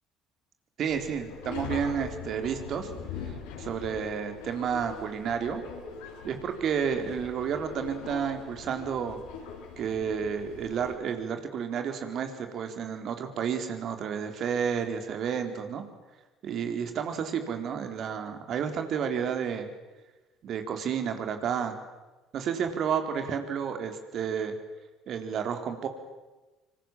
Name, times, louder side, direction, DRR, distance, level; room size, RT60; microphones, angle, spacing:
voice 1, 0.8-2.9 3.6-5.6 6.2-9.2 9.8-15.8 16.4-19.7 20.4-21.8 22.3-24.6 25.1-25.9, right 7 dB, 50° right, 6 dB, 4.0 m, -31 dB
Subway metro underground, 0.9-10.9, left 6 dB, 75° left, 6.0 m, -42 dB
26.0 x 26.0 x 7.5 m, 1.2 s
hypercardioid pair, 60°, 0 cm